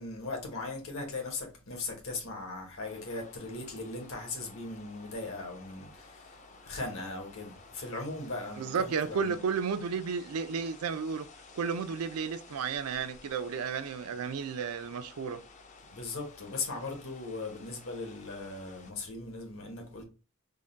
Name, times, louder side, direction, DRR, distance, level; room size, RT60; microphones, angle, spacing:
voice 1, 0.0-9.4 15.9-20.0, left 3 dB, 75° left, 1.2 m, -39 dB
sound 1, 2.8-18.9, left 4 dB, 35° left, 0.4 m, -54 dB
voice 2, 8.6-11.3 11.5-15.4, right 6 dB, 90° right, 0.4 m, -33 dB
3.7 x 2.2 x 3.8 m
head